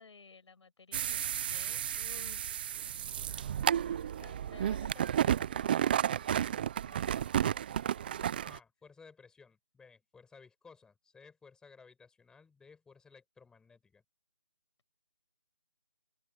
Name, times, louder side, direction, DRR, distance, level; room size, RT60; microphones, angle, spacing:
voice 1, 0.0-2.6 3.6-6.4 6.8-7.8 8.1-8.3, left 4 dB, 60° left, 7.9 m, -57 dB
sound 1, 0.9-8.6, right 10 dB, 20° right, 0.6 m, -32 dB
voice 2, 8.5-14.0, left 5 dB, 5° left, 7.2 m, -58 dB
open air
figure-of-eight pair, 160°, 17 cm